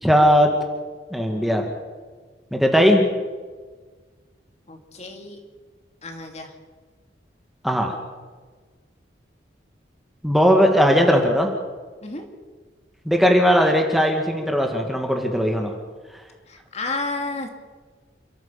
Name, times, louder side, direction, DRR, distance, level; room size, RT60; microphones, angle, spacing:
voice 1, 0.0-0.5 1.1-1.7 2.5-3.1 7.6-7.9 10.2-11.5 13.1-15.7, equal, ahead, 2 dB, 2.2 m, -18 dB
voice 2, 4.7-5.4 6.0-6.5 12.0-12.3 16.5-17.5, left 3 dB, 40° left, 4 dB, 2.6 m, -31 dB
29.0 x 13.5 x 7.2 m, 1.4 s
head